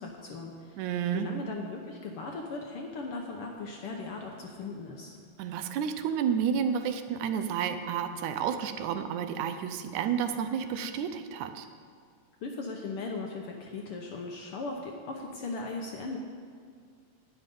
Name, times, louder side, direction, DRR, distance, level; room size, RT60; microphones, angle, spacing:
voice 1, 0.0-0.8 1.1-5.2 12.4-16.2, left 3 dB, 70° left, 1 dB, 1.4 m, -38 dB
voice 2, 0.8-1.3 5.4-11.7, right 8 dB, 90° right, 8 dB, 2.1 m, -31 dB
11.5 x 9.5 x 5.3 m, 2.1 s
omnidirectional pair, 3.3 m